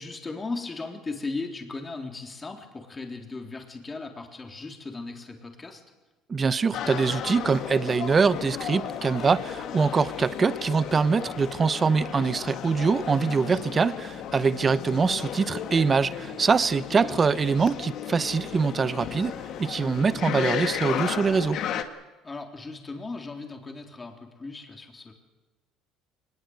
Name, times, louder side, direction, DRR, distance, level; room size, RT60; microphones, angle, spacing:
voice 1, 0.0-5.8 17.0-17.2 22.2-25.1, left 3 dB, 20° left, 3.7 m, -37 dB
voice 2, 6.3-19.3 19.6-21.6, right 5 dB, 30° right, 0.9 m, -24 dB
sound 1, 6.7-21.8, left 8 dB, 60° left, 2.1 m, -34 dB
24.0 x 20.5 x 8.1 m
cardioid pair, 110°, 0 cm